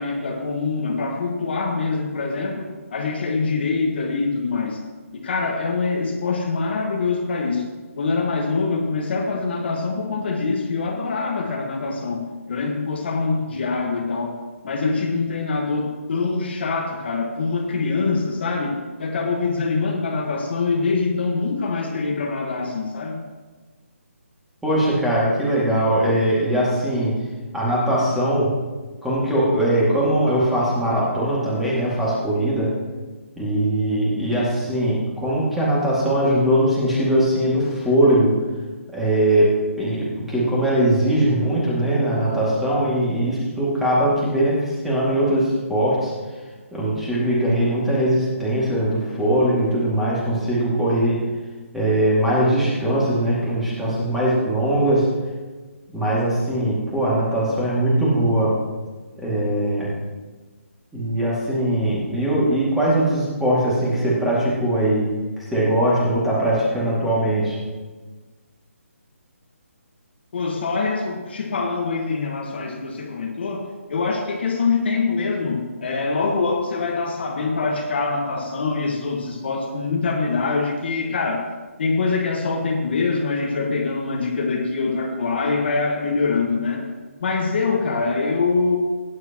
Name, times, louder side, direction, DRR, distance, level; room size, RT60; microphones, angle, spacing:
voice 1, 0.0-4.8 5.1-7.7 8.0-23.2 70.3-81.5 81.8-86.9 87.2-88.8, left 4 dB, 50° left, 2 dB, 1.4 m, -24 dB
voice 2, 24.6-27.2 27.5-28.5 29.0-32.7 33.4-38.3 38.9-46.1 46.7-51.2 51.7-55.1 55.9-58.6 59.2-59.9 60.9-65.1 65.4-67.6, right 1 dB, 5° right, -7 dB, 2.2 m, -21 dB
18.0 x 9.7 x 3.0 m, 1.3 s
hypercardioid pair, 165°, 8 cm